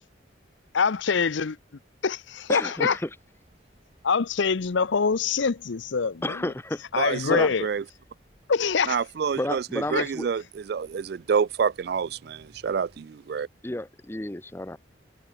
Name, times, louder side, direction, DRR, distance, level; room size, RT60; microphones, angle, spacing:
voice 1, 0.7-1.6 2.0-3.0 4.0-6.5 6.9-7.7 8.5-9.0 9.9-10.1, left 5 dB, 75° left, 0.6 m, -24 dB
voice 2, 2.5-3.0 6.2-6.8 7.2-7.5 9.4-10.3 13.6-14.8, left 1 dB, 10° left, 0.6 m, -31 dB
sound 1, 2.9-13.0, equal, 30° right, 4.3 m, -61 dB
voice 3, 7.0-7.8 8.9-13.5, right 6 dB, 55° right, 0.3 m, -28 dB
head